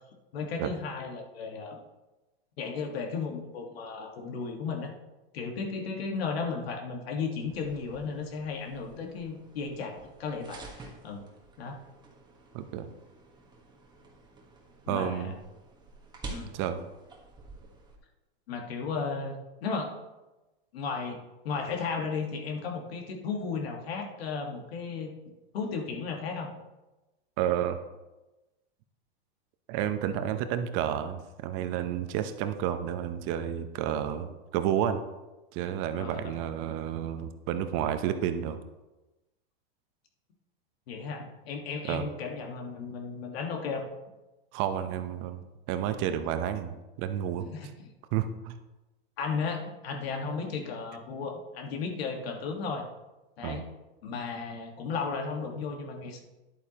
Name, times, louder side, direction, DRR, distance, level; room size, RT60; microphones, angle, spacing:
voice 1, 0.3-1.8 2.6-4.9 5.3-11.2 11.6-11.8 14.9-15.3 16.3-16.5 18.5-19.9 20.7-21.2 21.4-25.1 25.5-26.5 36.0-36.4 40.9-43.9 47.5-47.7 49.2-52.9 53.4-53.6 54.0-56.2, left 5 dB, 75° left, 3 dB, 1.6 m, -34 dB
sound 1, 7.4-18.0, right 3 dB, 15° right, 1.3 m, -49 dB
voice 2, 12.5-12.9 14.9-15.3 16.5-16.8 27.4-27.8 29.7-35.0 35.5-38.6 41.8-42.0 44.5-47.5 48.1-48.6 53.4-53.6, right 10 dB, 40° right, 9 dB, 0.7 m, -31 dB
10.5 x 8.3 x 2.9 m, 1.1 s
supercardioid pair, 135°, 31 cm